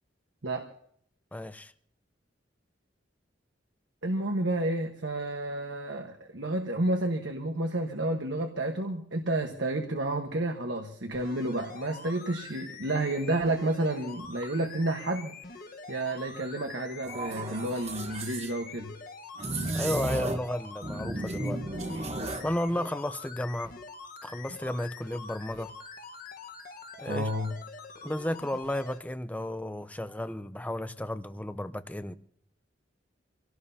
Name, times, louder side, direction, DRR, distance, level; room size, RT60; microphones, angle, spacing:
voice 1, 1.3-1.7 19.7-21.6 22.4-23.7 24.2-25.7 27.0-27.3 28.0-32.1, left 1 dB, 10° left, 0.6 m, -33 dB
voice 2, 4.0-15.4 15.9-18.9 27.1-27.5, right 1 dB, 70° right, 1.3 m, -30 dB
sound 1, 11.1-29.0 29.6-29.7, left 4 dB, 50° left, 1.3 m, -45 dB
sound 2, 17.0-18.5 19.4-20.5 20.8-22.5, right 2 dB, 35° right, 1.2 m, -34 dB
25.5 x 17.5 x 2.8 m
head